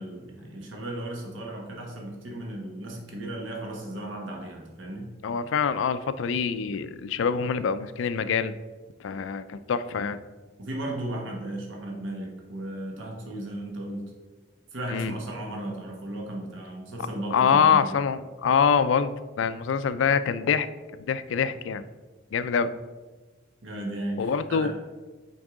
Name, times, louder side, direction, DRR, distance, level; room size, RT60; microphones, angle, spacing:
voice 1, 0.0-5.1 10.6-14.0 14.7-18.0 23.6-24.7, right 1 dB, 75° right, 0 dB, 1.2 m, -35 dB
voice 2, 5.2-8.5 9.0-10.2 14.9-15.1 17.3-19.1 19.4-20.7 21.0-21.8 22.3-22.7 24.2-24.7, left 6 dB, 70° left, 13 dB, 0.3 m, -25 dB
6.1 x 4.7 x 3.6 m, 1.3 s
head